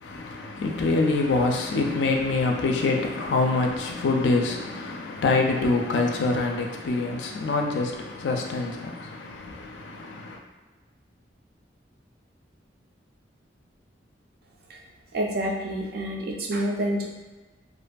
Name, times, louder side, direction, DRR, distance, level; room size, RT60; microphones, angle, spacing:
voice 1, 0.0-10.4, left 3 dB, 85° left, 0.4 m, -25 dB
voice 2, 15.1-17.1, right 1 dB, 60° right, 0.4 m, -28 dB
2.5 x 2.4 x 2.2 m
head